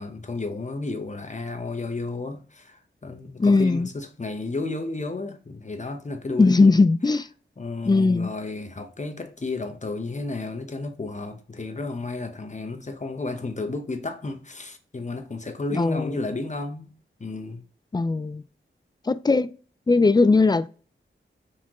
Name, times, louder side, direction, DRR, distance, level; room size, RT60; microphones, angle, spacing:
voice 1, 0.0-6.8 7.6-16.9 17.2-17.6, left 3 dB, 35° left, 0.9 m, -32 dB
voice 2, 3.4-3.9 6.4-7.3 7.9-8.3 15.7-16.1 17.9-18.4 19.1-19.5 19.9-20.7, left 3 dB, 20° left, 0.3 m, -19 dB
4.3 x 3.7 x 3.0 m
cardioid pair, 50°, 20 cm